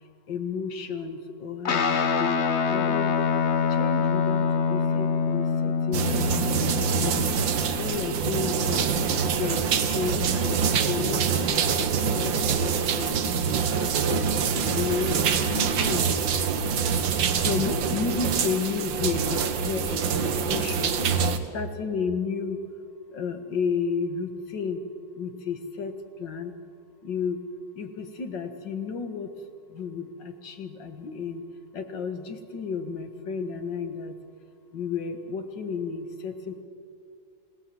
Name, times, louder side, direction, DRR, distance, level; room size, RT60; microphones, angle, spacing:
voice 1, 0.3-3.2 3.7-7.3 7.7-9.0 9.3-10.6 10.8-13.3 13.7-14.3 14.7-16.1 17.4-21.3 21.5-22.6 23.1-24.8 25.1-26.5 27.0-27.4 27.8-29.3 29.7-31.4 31.7-34.2 34.7-36.6, left 5 dB, 75° left, 7 dB, 2.4 m, -32 dB
Guitar, 1.6-10.4, left 6 dB, 45° left, 1.1 m, -27 dB
sound 1, 5.9-21.4, right 6 dB, 85° right, 2.0 m, -25 dB
26.5 x 18.0 x 7.7 m, 2.4 s
omnidirectional pair, 2.0 m